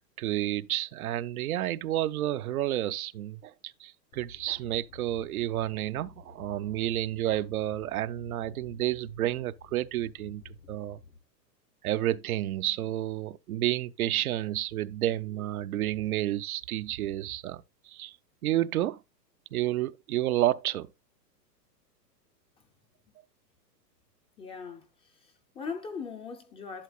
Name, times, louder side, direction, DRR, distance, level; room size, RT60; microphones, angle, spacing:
voice 1, 0.2-11.0 11.8-18.2 18.4-19.0 19.5-20.9, right 14 dB, 60° right, 0.7 m, -30 dB
sound 1, 4.1-11.2, left 4 dB, 75° left, 1.6 m, -52 dB
voice 2, 24.4-26.8, left 5 dB, 10° left, 0.6 m, -40 dB
11.5 x 6.8 x 2.2 m
hypercardioid pair, 125°, 50 cm